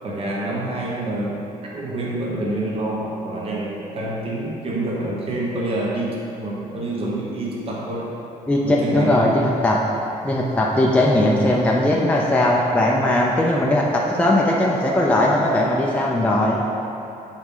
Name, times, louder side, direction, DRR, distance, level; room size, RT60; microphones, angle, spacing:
voice 1, 0.0-1.4 1.7-8.1 8.6-9.2, right 1 dB, 40° right, -4 dB, 1.2 m, -27 dB
voice 2, 8.5-9.8 10.2-16.6, left 1 dB, 10° left, -3 dB, 0.5 m, -19 dB
7.8 x 4.1 x 3.8 m, 2.8 s
cardioid pair, 135°, 15 cm